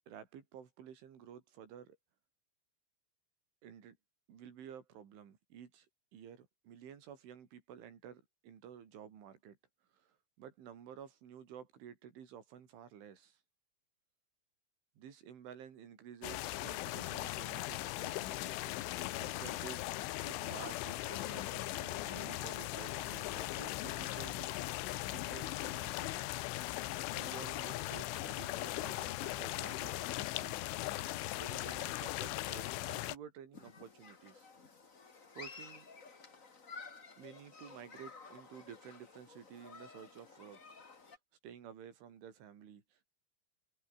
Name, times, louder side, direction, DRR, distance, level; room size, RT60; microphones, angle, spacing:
voice 1, 0.0-2.0 3.6-4.0 4.3-5.9 6.1-9.6 9.9-13.4 15.0-19.9 20.2-26.3 27.2-30.7 31.0-34.5 35.4-35.9 37.2-40.8 41.0-41.2 41.4-43.0, right 8 dB, 75° right, 5.8 m, -53 dB
sound 1, 16.2-33.2, left 17 dB, 80° left, 3.5 m, -39 dB
Human group actions, 33.5-41.2, left 4 dB, 45° left, 1.0 m, -53 dB
omnidirectional pair, 5.5 m